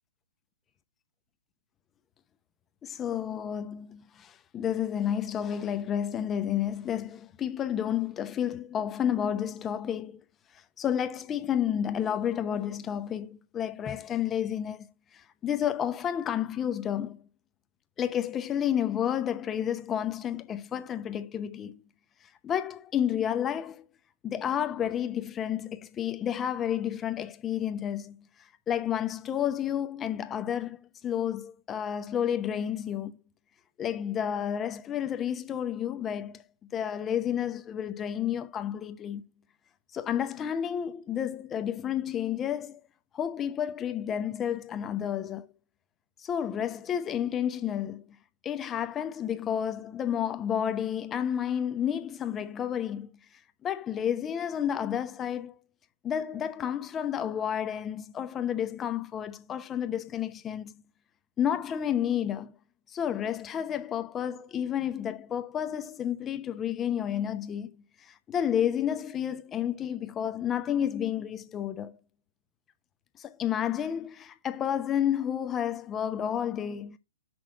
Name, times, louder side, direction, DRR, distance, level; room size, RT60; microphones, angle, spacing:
voice 1, 2.8-10.2 10.8-17.2 18.0-21.8 22.4-23.8 24.2-33.2 33.8-36.4 36.7-39.2 39.9-42.8 43.1-45.5 46.2-48.0 48.4-53.1 53.6-55.6 56.0-60.7 61.4-62.5 62.9-72.0 73.2-77.0, left 9 dB, 20° left, 0.8 m, -31 dB
6.2 x 6.1 x 4.1 m
hypercardioid pair, 120°, 0 cm